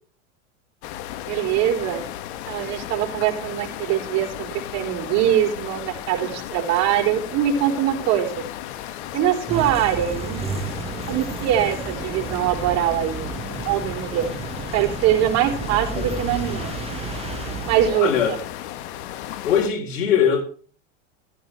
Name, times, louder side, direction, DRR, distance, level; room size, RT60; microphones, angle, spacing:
sound 1, 0.8-19.7, left 12 dB, 60° left, 1.8 m, -35 dB
voice 1, 1.3-2.0 2.5-8.3 9.1-10.4 11.1-13.3 13.6-14.3 14.7-16.7 17.7-18.4, right 11 dB, 45° right, 4.5 m, -22 dB
sound 2, 9.5-17.9, right 5 dB, 15° right, 1.6 m, -32 dB
voice 2, 17.9-18.4 19.4-20.4, left 8 dB, 90° left, 4.2 m, -21 dB
14.5 x 14.0 x 3.4 m
supercardioid pair, 135°, 37 cm